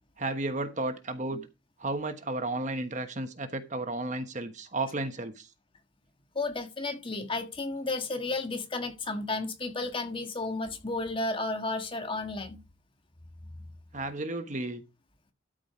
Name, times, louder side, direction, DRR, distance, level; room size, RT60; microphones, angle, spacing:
voice 1, 0.2-1.5 1.8-5.5 13.9-14.8, right 2 dB, 40° right, 1.2 m, -33 dB
voice 2, 6.3-12.6, left 2 dB, 25° left, 1.6 m, -33 dB
13.0 x 5.1 x 5.0 m
head